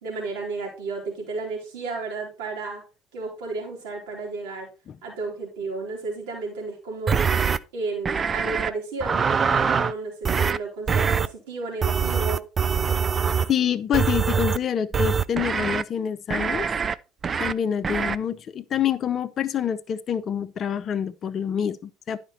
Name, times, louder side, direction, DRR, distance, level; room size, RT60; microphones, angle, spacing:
voice 1, 0.0-2.8 3.1-4.7 5.0-7.2 7.7-12.4, right 3 dB, 75° right, 3.1 m, -33 dB
sound 1, 7.1-7.6 8.1-8.7 9.0-9.9 10.2-10.6 10.9-11.3 11.8-13.5 13.9-14.6 14.9-15.8 16.3-16.9 17.2-17.5 17.8-18.2, right 6 dB, 35° right, 0.4 m, -23 dB
voice 2, 13.5-16.7 17.4-22.2, left 9 dB, 45° left, 0.6 m, -26 dB
10.5 x 5.1 x 4.2 m
hypercardioid pair, 65°, 0 cm